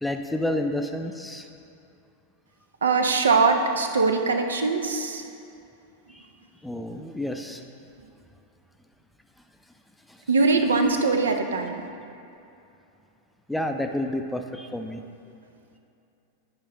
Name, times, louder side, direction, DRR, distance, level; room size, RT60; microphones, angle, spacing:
voice 1, 0.0-1.5 6.1-6.2 6.6-7.6 10.1-10.2 13.5-15.0, left 1 dB, 5° left, 5 dB, 0.5 m, -30 dB
voice 2, 2.8-5.2 10.3-11.8, right 4 dB, 70° right, 5 dB, 0.5 m, -22 dB
10.5 x 5.1 x 3.6 m, 2.7 s
figure-of-eight pair, 90°, 0 cm